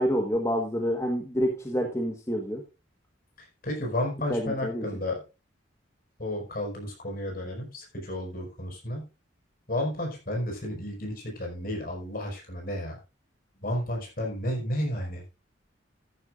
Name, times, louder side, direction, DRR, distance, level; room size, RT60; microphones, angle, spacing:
voice 1, 0.0-2.6 4.3-4.9, equal, 15° left, 2 dB, 1.4 m, -28 dB
voice 2, 3.6-5.2 6.2-9.0 9.7-13.0 13.6-15.2, left 1 dB, 50° left, 1 dB, 5.2 m, -32 dB
13.5 x 10.5 x 2.5 m, 0.28 s
head